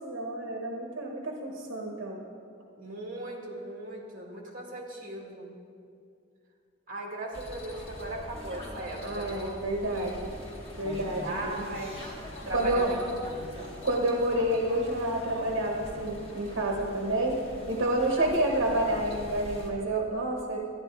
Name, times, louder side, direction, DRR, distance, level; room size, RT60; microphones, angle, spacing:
voice 1, 0.0-2.2 9.0-10.1 10.8-11.7 12.5-12.9 13.8-17.4 17.7-20.6, right 1 dB, 65° right, 1 dB, 1.3 m, -29 dB
voice 2, 2.8-5.5 6.9-10.2 10.9-12.1 12.4-13.0 13.4-13.7 18.2-18.3, right 1 dB, 40° right, -1 dB, 2.0 m, -38 dB
sound 1, 7.3-19.7, equal, 30° left, 1.9 m, -42 dB
13.5 x 10.5 x 4.8 m, 2.4 s
head